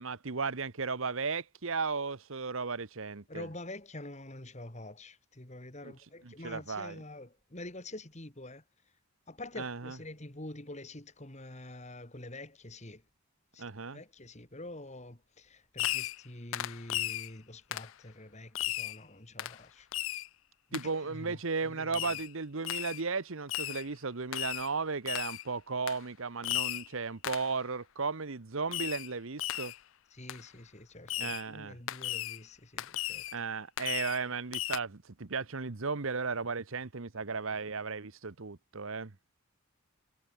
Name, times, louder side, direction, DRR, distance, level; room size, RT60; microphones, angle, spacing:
voice 1, 0.0-3.5 5.8-5.9 6.2-7.0 9.6-9.9 13.6-14.0 20.7-29.7 31.2-31.8 33.3-39.1, right 4 dB, 65° right, 1.0 m, -35 dB
voice 2, 3.3-8.6 9.3-13.0 13.5-13.6 13.9-19.9 20.7-22.2 30.1-33.2, left 1 dB, 30° left, 2.5 m, -46 dB
Fireworks, 15.8-16.3 16.5-17.3 17.7-17.9 18.5-19.0 19.4-19.6 19.9-20.3 20.7-20.9 21.9-22.3 22.6-23.0 23.5-23.8 24.3-24.7 25.1-25.4 25.9-26.0 26.4-26.9 27.2-27.5 28.7-29.1 29.4-29.8 30.3-30.4 31.1-31.4 31.9-32.4 32.8-33.4 33.8-34.2 34.5-34.8, left 15 dB, 60° left, 0.4 m, -35 dB
head